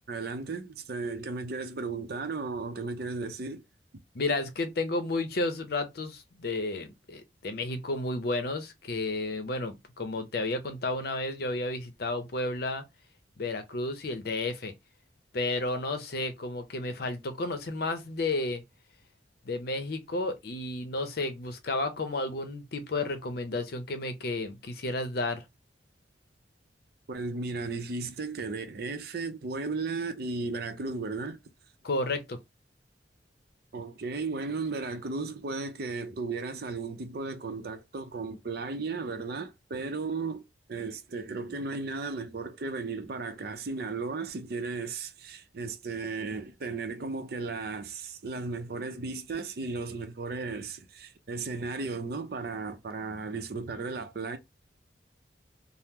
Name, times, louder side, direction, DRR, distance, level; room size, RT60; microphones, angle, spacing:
voice 1, 0.1-3.6 27.1-31.4 33.7-40.4 40.7-54.4, right 3 dB, 60° right, 0.5 m, -35 dB
voice 2, 4.1-12.8 13.4-14.7 15.3-18.6 19.4-25.4 31.8-32.4, left 2 dB, 60° left, 0.6 m, -32 dB
2.9 x 2.0 x 3.5 m
head